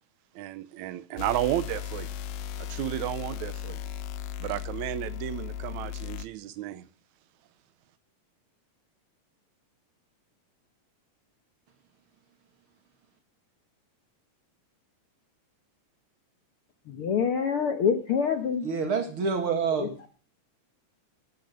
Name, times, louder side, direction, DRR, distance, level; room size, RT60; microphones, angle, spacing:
voice 1, 0.4-2.1 2.6-3.8 4.4-6.9, right 14 dB, 75° right, 1.9 m, -32 dB
sound 1, 1.2-6.3, left 9 dB, 85° left, 2.5 m, -36 dB
voice 2, 16.9-18.7 19.7-20.1, left 6 dB, 60° left, 1.5 m, -26 dB
voice 3, 18.6-19.9, right 5 dB, 45° right, 2.7 m, -27 dB
13.0 x 9.5 x 6.7 m
omnidirectional pair, 3.8 m